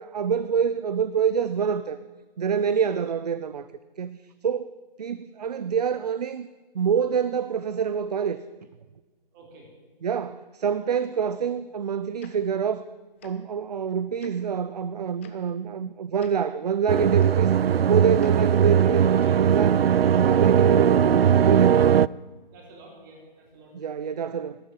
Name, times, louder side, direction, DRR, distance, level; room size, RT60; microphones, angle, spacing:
voice 1, 0.0-2.0 2.4-3.7 4.0-4.2 4.4-4.7 5.0-6.5 6.7-8.4 10.0-12.8 13.2-19.8 20.1-21.9 23.7-24.6, right 7 dB, 45° right, 14 dB, 0.6 m, -26 dB
voice 2, 9.3-9.7 19.0-19.4 22.5-23.9, right 2 dB, 20° right, 0 dB, 3.8 m, -49 dB
Tick-tock, 12.2-12.3 13.2-13.3 14.2-14.3 15.2-15.3 16.2-16.3 17.2-17.3 18.2-18.3 19.2-19.4, left 9 dB, 15° left, 0.6 m, -47 dB
sound 1, 16.9-22.1, right 8 dB, 90° right, 0.5 m, -19 dB
13.0 x 12.5 x 8.8 m, 1.3 s
hypercardioid pair, 160°, 29 cm